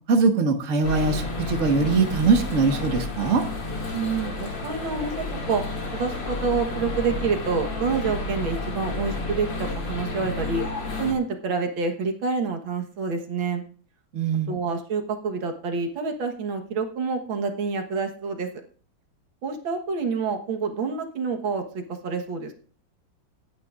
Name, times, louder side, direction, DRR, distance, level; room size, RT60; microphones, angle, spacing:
voice 1, 0.1-3.4 14.1-14.5, right 4 dB, 45° right, 4 dB, 1.6 m, -22 dB
sound 1, 0.8-11.1, left 2 dB, 70° left, 3.0 m, -31 dB
voice 2, 3.9-5.6 5.9-10.6 11.0-13.6 14.5-18.5 19.4-22.5, right 4 dB, 85° right, 4 dB, 2.1 m, -27 dB
18.0 x 9.6 x 2.5 m, 0.42 s
omnidirectional pair, 2.1 m